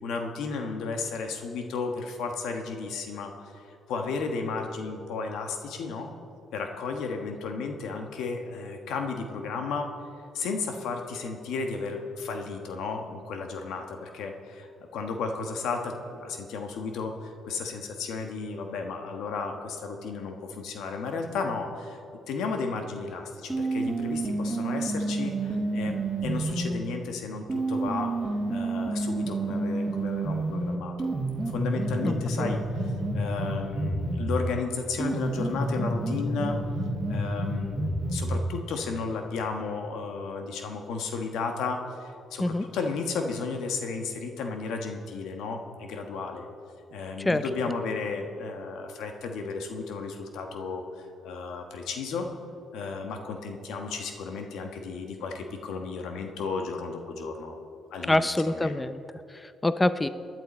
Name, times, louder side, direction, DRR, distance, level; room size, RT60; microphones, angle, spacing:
voice 1, 0.0-6.1 6.5-9.9 10.3-22.0 22.3-36.6 37.1-46.5 46.9-52.3 52.7-57.6 57.9-58.8, left 4 dB, 85° left, 4 dB, 1.3 m, -34 dB
sound 1, 23.5-26.8 27.5-34.5 35.0-38.5, right 2 dB, 25° right, 2.1 m, -29 dB
voice 2, 32.0-32.5 42.4-42.6 47.2-47.4 58.1-60.1, left 2 dB, 15° left, 12 dB, 0.5 m, -26 dB
19.5 x 10.5 x 4.3 m, 2.6 s
cardioid pair, 90°, 0 cm